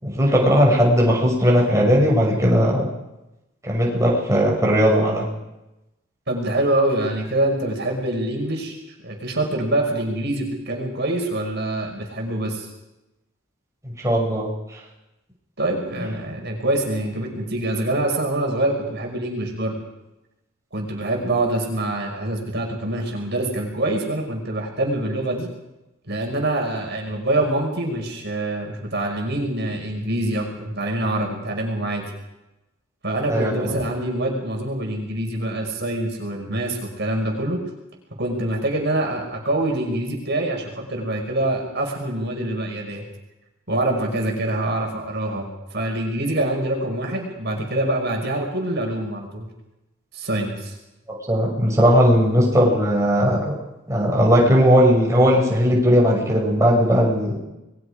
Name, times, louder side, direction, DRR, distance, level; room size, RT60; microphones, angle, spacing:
voice 1, 0.0-2.9 3.6-5.3 13.8-14.5 33.3-33.8 51.3-53.5 53.9-57.4, equal, 15° right, -3 dB, 6.3 m, -18 dB
voice 2, 6.3-12.7 15.6-19.8 20.7-25.5 26.1-32.0 33.0-37.6 38.2-43.0 43.7-49.5 50.1-50.7, right 1 dB, 55° right, 1 dB, 5.7 m, -25 dB
29.5 x 22.0 x 5.1 m, 0.96 s
head